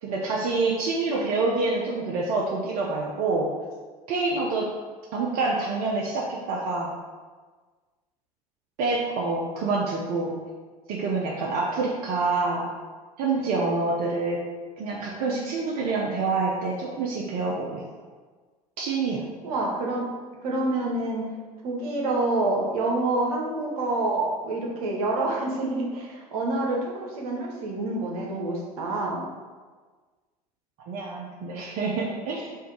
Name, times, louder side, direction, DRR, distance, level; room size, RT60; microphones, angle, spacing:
voice 1, 0.0-3.5 4.1-4.7 5.1-6.9 8.8-10.3 10.9-12.7 13.2-14.4 14.8-17.8 18.8-19.2 30.9-32.6, right 3 dB, 50° right, -3 dB, 0.6 m, -27 dB
voice 2, 19.4-20.1 20.4-21.3 21.6-29.2, right 2 dB, 65° right, -1 dB, 1.0 m, -27 dB
3.4 x 2.6 x 4.6 m, 1.4 s
figure-of-eight pair, 75°, 20 cm